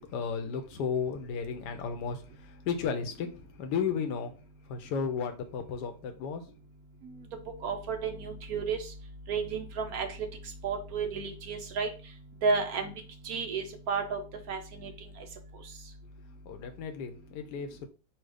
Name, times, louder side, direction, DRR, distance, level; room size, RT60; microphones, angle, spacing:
voice 1, 0.1-2.2 2.7-3.3 3.6-4.3 4.7-6.4 16.5-17.9, left 6 dB, 70° left, 1.3 m, -33 dB
voice 2, 7.6-8.9 9.3-10.1 10.6-11.9 12.4-12.9 13.2-14.2 14.5-14.9, right 5 dB, 65° right, 1.0 m, -32 dB
4.6 x 2.4 x 4.8 m
omnidirectional pair, 1.9 m